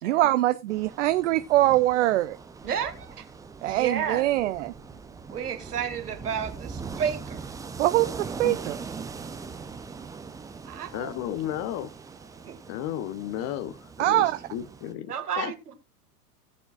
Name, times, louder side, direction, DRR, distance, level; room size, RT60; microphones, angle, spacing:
voice 1, 0.0-2.4 3.6-4.7 7.8-8.1 8.4-8.8 14.0-14.4, right 15 dB, 50° right, 0.7 m, -23 dB
sound 1, 0.7-14.9, right 5 dB, 5° right, 0.6 m, -41 dB
voice 2, 2.6-3.3 3.7-4.5 5.3-7.5 10.6-11.1 12.4-12.6 15.1-15.7, right 8 dB, 70° right, 2.1 m, -32 dB
voice 3, 10.9-11.9 12.7-15.5, left 11 dB, 35° left, 0.9 m, -33 dB
18.0 x 7.0 x 2.4 m
figure-of-eight pair, 100°, 47 cm